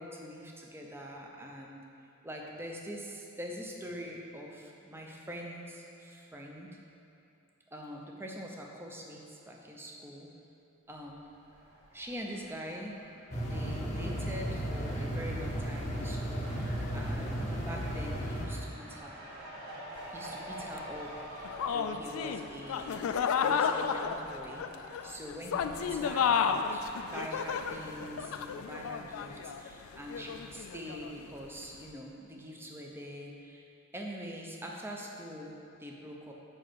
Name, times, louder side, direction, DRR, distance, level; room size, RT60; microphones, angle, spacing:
voice 1, 0.0-1.8 2.2-6.8 7.7-10.3 10.9-11.2 11.9-13.0 13.5-19.2 20.1-33.7 33.9-36.3, equal, 10° right, -1 dB, 0.6 m, -44 dB
Fowl, 11.1-28.4, right 1 dB, 55° right, 1.7 m, -49 dB
sound 1, 13.3-18.5, equal, 35° left, 0.8 m, -34 dB
sound 2, 20.0-20.1 20.8-20.9 21.4-31.3, left 7 dB, 90° left, 0.3 m, -32 dB
5.2 x 4.6 x 6.2 m, 2.7 s
head